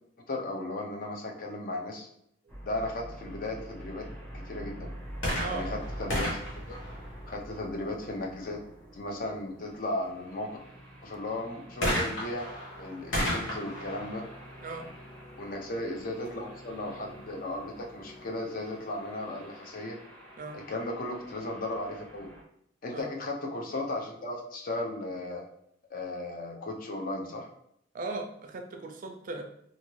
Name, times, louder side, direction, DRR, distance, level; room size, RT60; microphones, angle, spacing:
voice 1, 0.3-2.1 2.6-4.1 4.5-4.9 5.5-6.8 7.3-8.6 8.9-10.6 11.0-12.5 12.8-14.3 15.4-20.0 20.5-22.3 22.8-25.4 25.9-27.5, left 1 dB, 50° left, 1 dB, 0.5 m, -36 dB
sound 1, 2.5-22.4, equal, 5° left, 0.7 m, -46 dB
sound 2, 5.1-7.7 11.8-15.4 16.2-16.3, equal, 75° left, 1.0 m, -34 dB
voice 2, 5.4-5.8 14.6-14.9 20.4-20.6 22.9-23.1 27.9-29.4, right 3 dB, 45° right, 4 dB, 0.4 m, -37 dB
2.6 x 2.5 x 3.0 m, 0.73 s
head